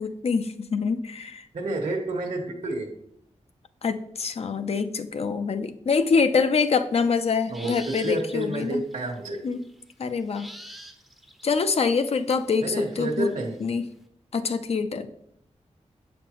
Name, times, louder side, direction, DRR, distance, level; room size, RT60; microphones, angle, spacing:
voice 1, 0.0-1.4 3.8-8.8 9.4-9.6 10.0-10.5 11.4-13.3 13.6-13.8 14.3-15.1, left 5 dB, 55° left, 9 dB, 0.5 m, -25 dB
voice 2, 1.5-2.9 7.5-9.4 12.6-13.6, right 2 dB, 70° right, 2 dB, 1.1 m, -29 dB
sound 1, 7.2-13.7, equal, ahead, 0.6 m, -47 dB
7.7 x 5.1 x 3.0 m, 0.72 s
wide cardioid pair, 135°, 12 cm